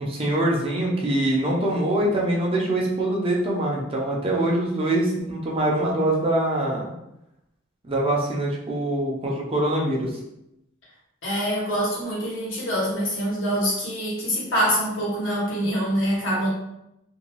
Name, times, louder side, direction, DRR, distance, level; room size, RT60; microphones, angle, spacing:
voice 1, 0.0-6.9 7.9-10.1, right 1 dB, 30° right, -3 dB, 0.6 m, -24 dB
voice 2, 11.2-16.5, equal, 80° left, -5 dB, 1.2 m, -25 dB
2.6 x 2.2 x 3.0 m, 0.84 s
head